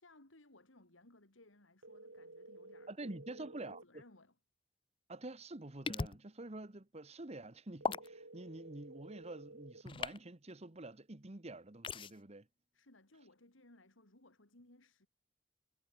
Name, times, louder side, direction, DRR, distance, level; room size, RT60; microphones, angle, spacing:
voice 1, 0.0-2.9 3.3-4.4 12.7-15.1, left 2 dB, 90° left, 3.7 m, -63 dB
sound 1, 1.8-3.8 7.8-9.8, right 2 dB, 85° right, 4.0 m, -54 dB
voice 2, 2.9-4.0 5.1-12.5, right 2 dB, 35° right, 1.3 m, -48 dB
sound 2, 5.9-6.2 7.8-8.1 9.8-10.2 11.8-12.1, left 4 dB, 25° left, 0.5 m, -37 dB
head